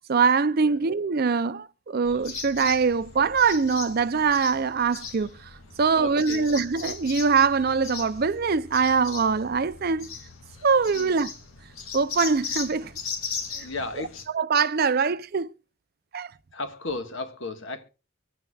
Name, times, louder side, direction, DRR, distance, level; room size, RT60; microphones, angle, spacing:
voice 1, 0.1-5.3 5.8-10.1 10.6-11.3 11.9-12.9 13.6-13.7 14.3-15.5 16.1-16.3, right 5 dB, 45° right, 0.5 m, -23 dB
sound 1, 2.0-14.2, left 5 dB, 80° left, 2.2 m, -38 dB
voice 2, 5.9-6.5 10.9-11.3 13.6-14.3 16.5-17.8, left 2 dB, 60° left, 1.5 m, -35 dB
24.5 x 9.1 x 2.3 m
head